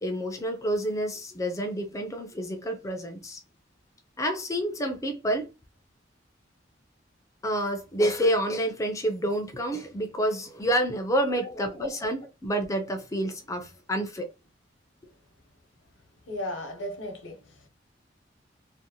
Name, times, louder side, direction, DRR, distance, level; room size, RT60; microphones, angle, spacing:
voice 1, 0.0-3.4 4.2-5.5 7.4-14.3, right 1 dB, 15° left, 0.4 m, -28 dB
voice 2, 16.3-17.7, left 1 dB, 85° left, 0.7 m, -36 dB
2.6 x 2.0 x 2.6 m
head